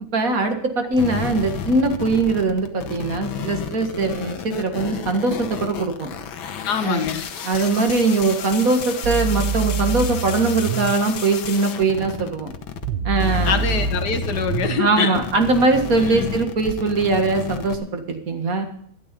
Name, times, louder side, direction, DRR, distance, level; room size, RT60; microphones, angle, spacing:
voice 1, 0.1-6.1 6.8-7.1 7.4-12.5 13.0-13.6 14.8-18.7, right 3 dB, 45° right, 5 dB, 2.1 m, -21 dB
sound 1, 0.9-12.9 13.2-17.8, left 8 dB, 75° left, 1.8 m, -32 dB
voice 2, 6.6-7.3 13.5-15.2 16.1-16.4, left 6 dB, 55° left, 7 dB, 1.8 m, -24 dB
sound 2, 9.0-11.0 12.8-14.8 16.7-16.8, right 7 dB, 75° right, 1.9 m, -25 dB
13.0 x 12.0 x 5.3 m, 0.64 s
omnidirectional pair, 2.2 m